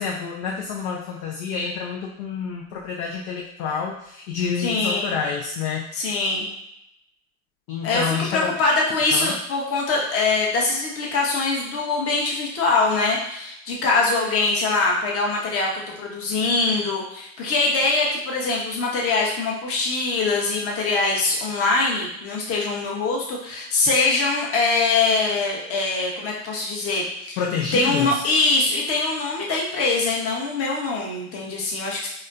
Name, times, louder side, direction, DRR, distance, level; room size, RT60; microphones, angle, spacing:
voice 1, 0.0-6.1 7.7-8.5 9.1-9.4 27.4-28.2 31.8-31.9, left 6 dB, 50° left, -1 dB, 0.6 m, -28 dB
voice 2, 4.6-5.2 5.9-6.5 7.8-8.0 8.3-15.7 16.0-27.4 27.7-32.1, left 3 dB, 30° left, -2 dB, 1.0 m, -23 dB
4.2 x 2.2 x 2.5 m, 0.78 s
hypercardioid pair, 110°, 43 cm